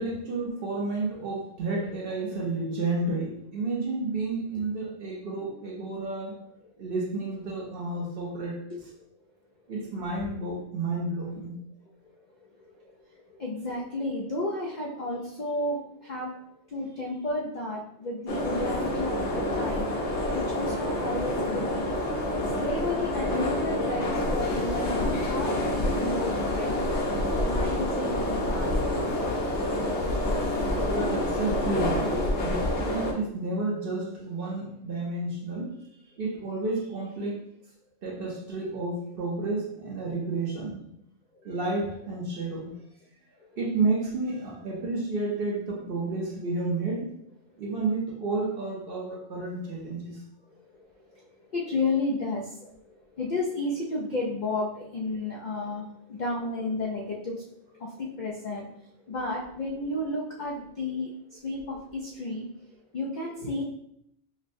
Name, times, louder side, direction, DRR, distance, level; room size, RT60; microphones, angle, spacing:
voice 1, 0.0-6.4 6.8-8.6 9.7-11.5 30.8-35.8 36.2-37.4 38.0-40.8 41.4-42.7 43.6-47.1 47.6-50.2, right 3 dB, 50° right, -2 dB, 0.8 m, -31 dB
voice 2, 12.4-16.3 16.7-22.0 22.4-26.8 27.4-28.7 41.3-41.5 43.4-43.5 50.5-57.4 57.8-63.6, left 2 dB, 90° left, -2 dB, 0.4 m, -33 dB
sound 1, 18.3-33.1, left 1 dB, 60° left, 0.9 m, -27 dB
5.2 x 2.1 x 2.6 m, 0.74 s
omnidirectional pair, 1.4 m